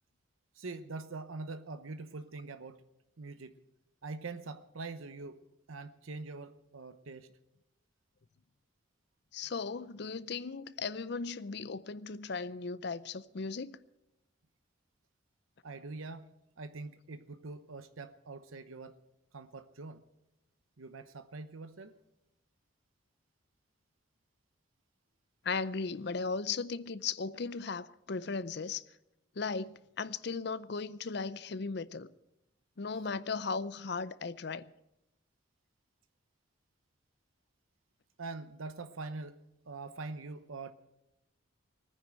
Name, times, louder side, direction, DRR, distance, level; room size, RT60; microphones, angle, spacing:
voice 1, 0.6-2.8 3.2-3.5 4.0-5.4 5.7-7.3 15.6-16.3 16.6-18.9 19.3-20.0 20.8-21.9 32.9-33.0 38.2-39.4 39.7-40.7, right 3 dB, 90° right, 0.8 m, -44 dB
voice 2, 9.3-13.8 25.4-28.8 29.4-32.1 32.8-34.7, left 4 dB, 55° left, 0.5 m, -37 dB
18.0 x 9.8 x 7.7 m
head